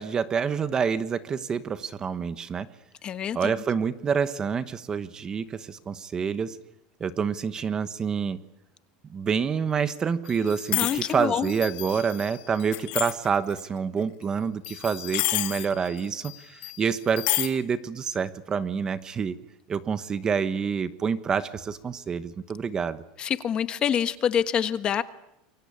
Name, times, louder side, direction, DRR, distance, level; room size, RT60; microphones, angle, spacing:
voice 1, 0.0-2.7 3.3-6.6 7.0-8.4 9.1-19.4 19.7-23.0, right 6 dB, 20° right, 12 dB, 1.2 m, -27 dB
voice 2, 3.0-3.5 10.7-11.5 23.2-25.0, left 8 dB, 30° left, 11 dB, 1.3 m, -26 dB
sound 1, 10.3-11.1 11.4-13.6 14.6-16.0 16.2-16.3 16.6-17.5, left 19 dB, 55° left, 2.4 m, -29 dB
28.0 x 23.5 x 8.6 m, 0.85 s
supercardioid pair, 155°, 3 cm